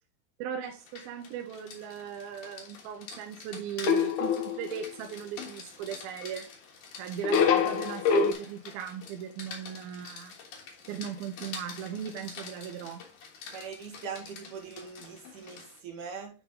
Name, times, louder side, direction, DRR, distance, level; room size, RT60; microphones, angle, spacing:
voice 1, 0.4-6.5 7.0-10.3 10.9-13.0, right 8 dB, 80° right, 4 dB, 2.4 m, -38 dB
Rain, 0.7-15.8, left 5 dB, 60° left, 2.6 m, -47 dB
sound 1, 3.9-4.9 7.2-8.3, left 6 dB, 85° left, 1.7 m, -25 dB
voice 2, 13.5-16.3, right 6 dB, 60° right, 1 dB, 3.0 m, -41 dB
10.5 x 3.6 x 3.7 m, 0.33 s
omnidirectional pair, 4.7 m